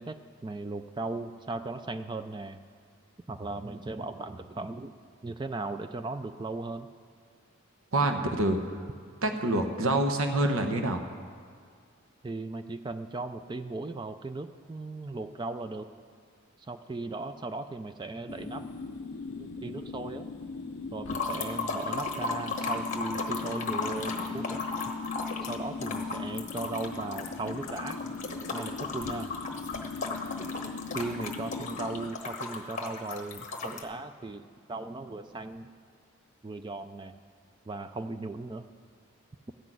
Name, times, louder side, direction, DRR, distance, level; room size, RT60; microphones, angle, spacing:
voice 1, 0.0-2.6 3.3-4.9 5.2-6.9 12.2-15.9 16.6-18.7 19.3-20.3 20.9-24.7 25.4-28.0 28.5-29.3 30.9-35.7 36.4-37.2 37.7-38.7, right 2 dB, 20° right, 9 dB, 0.3 m, -37 dB
voice 2, 7.9-8.6 9.2-11.0, right 2 dB, 75° right, 5 dB, 0.9 m, -26 dB
sound 1, 18.3-32.1, left 4 dB, 75° left, 0.5 m, -39 dB
sound 2, 21.1-33.8, left 3 dB, 35° left, 1.0 m, -36 dB
13.5 x 6.1 x 9.0 m, 2.1 s
head